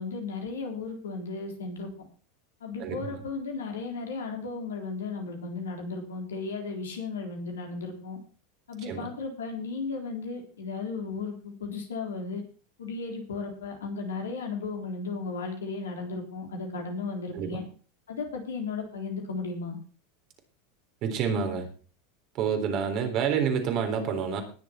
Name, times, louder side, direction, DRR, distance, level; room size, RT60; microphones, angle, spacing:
voice 1, 0.0-1.9 2.6-8.2 8.7-12.4 12.8-17.6 18.1-19.8, left 4 dB, 80° left, 2 dB, 3.9 m, -35 dB
voice 2, 2.8-3.2 8.8-9.1 17.3-17.6 21.0-21.7 22.4-24.4, right 7 dB, 50° right, 6 dB, 3.7 m, -28 dB
19.5 x 7.0 x 4.5 m, 0.39 s
hypercardioid pair, 90°, 0 cm